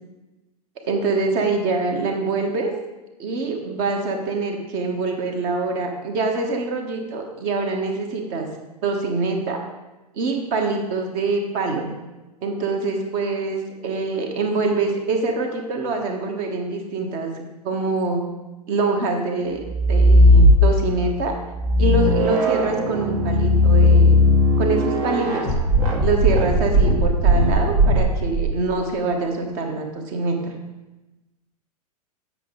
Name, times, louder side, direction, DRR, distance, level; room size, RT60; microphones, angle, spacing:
voice 1, 0.9-2.7 3.2-8.5 8.8-9.6 10.1-11.9 12.4-17.3 17.6-18.2 18.7-21.4 21.8-24.2 24.6-25.5 26.0-30.5, right 3 dB, 45° right, 3 dB, 1.4 m, -24 dB
sound 1, 19.6-21.0 21.5-28.5, left 1 dB, 60° right, 1.8 m, -16 dB
7.8 x 6.0 x 3.9 m, 1.1 s
figure-of-eight pair, 100°, 20 cm